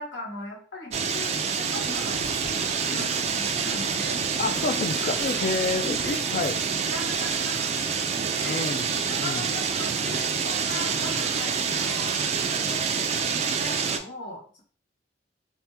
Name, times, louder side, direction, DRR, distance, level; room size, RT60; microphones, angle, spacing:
voice 1, 0.0-4.4 5.0-5.6 6.0-6.5 6.8-7.8 8.3-8.6 9.1-12.9 13.3-14.6, left 2 dB, 90° left, -2 dB, 1.2 m, -39 dB
sound 1, 0.9-14.0, right 6 dB, 35° right, 0.3 m, -27 dB
sound 2, 1.8-7.4, left 1 dB, 65° left, 1.1 m, -46 dB
voice 2, 4.4-6.6 8.4-9.5, left 4 dB, 50° left, 9 dB, 0.3 m, -29 dB
2.8 x 2.1 x 3.3 m, 0.43 s
head